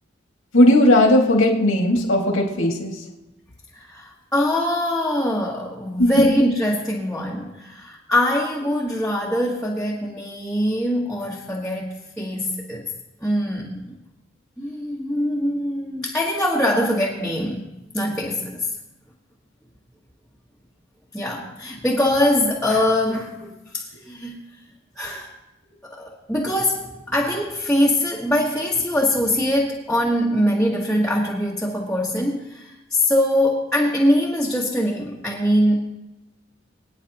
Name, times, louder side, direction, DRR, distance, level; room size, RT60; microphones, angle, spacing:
voice 1, 0.5-2.9 6.0-6.3, left 1 dB, 75° left, 0 dB, 2.1 m, -16 dB
voice 2, 3.7-12.8 13.2-14.0 14.6-17.6 17.9-18.7 21.1-24.4 24.9-25.3 25.8-35.9, left 1 dB, 5° left, -5 dB, 1.3 m, -23 dB
26.0 x 9.1 x 2.9 m, 0.96 s
head